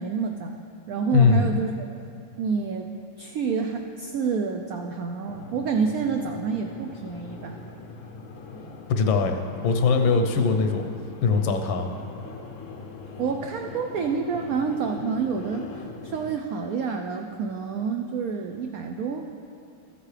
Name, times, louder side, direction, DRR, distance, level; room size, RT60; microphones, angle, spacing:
voice 1, 0.0-1.9 2.4-2.9 3.2-7.6 13.2-19.3, right 5 dB, 80° right, 4 dB, 0.7 m, -28 dB
voice 2, 1.1-1.6 8.9-10.8 11.2-11.9, left 4 dB, 80° left, 5 dB, 1.5 m, -21 dB
sound 1, 5.3-16.4, left 4 dB, 65° left, 0.8 m, -41 dB
13.5 x 8.2 x 3.3 m, 2.7 s
omnidirectional pair, 2.1 m